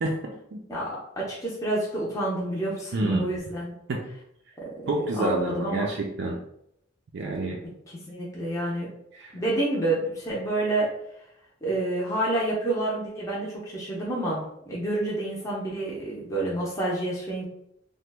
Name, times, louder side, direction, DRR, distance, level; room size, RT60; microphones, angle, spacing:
voice 1, 0.0-0.6 2.9-3.3 3.9-4.0 4.9-6.4 7.1-7.6 9.1-9.3, right 2 dB, 60° right, -1 dB, 0.4 m, -28 dB
voice 2, 0.7-3.7 4.6-4.7 5.2-5.9 8.1-8.9 9.3-10.9 11.6-17.4, right 1 dB, 15° left, -5 dB, 0.5 m, -28 dB
2.9 x 2.1 x 3.3 m, 0.76 s
head